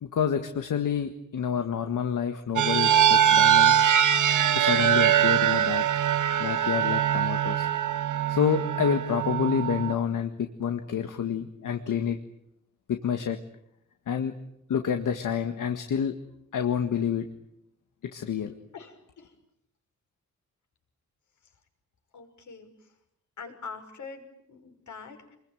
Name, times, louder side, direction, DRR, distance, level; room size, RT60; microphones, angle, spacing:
voice 1, 0.0-3.7 4.5-5.8 6.4-7.7 8.3-12.2 12.9-13.4 14.1-14.3 14.7-16.1 16.5-17.3 18.1-18.5, left 7 dB, 85° left, 6 dB, 1.8 m, -28 dB
sound 1, 2.6-9.9, right 9 dB, 75° right, 1.4 m, -22 dB
voice 2, 18.7-19.3 22.1-22.7 23.4-25.4, left 5 dB, 70° left, 4 dB, 6.0 m, -44 dB
28.0 x 22.0 x 9.3 m, 0.77 s
wide cardioid pair, 180°, 31 cm